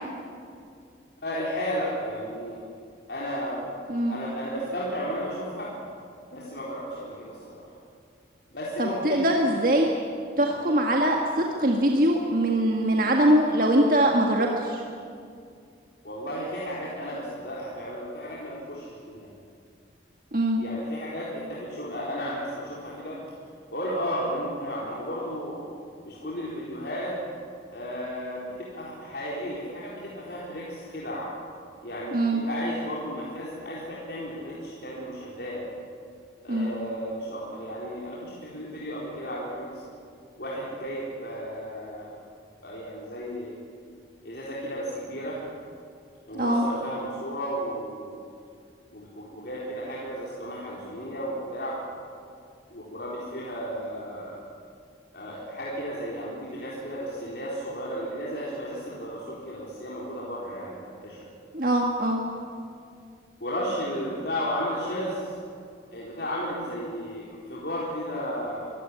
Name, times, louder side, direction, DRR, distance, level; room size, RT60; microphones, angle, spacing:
voice 1, 1.2-2.6 3.1-3.6 4.1-5.7 6.3-7.7 8.5-9.5 16.0-19.3 20.6-23.2 23.7-25.7 26.0-27.1 27.7-31.3 31.8-35.6 36.4-39.8 40.4-42.1 42.6-43.5 44.2-45.4 46.3-48.2 48.9-51.7 52.7-54.3 55.1-61.3 63.4-65.3 65.9-68.7, equal, 60° left, -6 dB, 4.2 m, -34 dB
voice 2, 3.9-4.2 8.8-9.9 10.4-14.8 20.3-20.6 32.1-32.4 36.5-36.7 46.3-46.7 61.5-62.2, right 1 dB, 50° right, 0 dB, 1.9 m, -22 dB
24.0 x 16.5 x 9.9 m, 2.4 s
head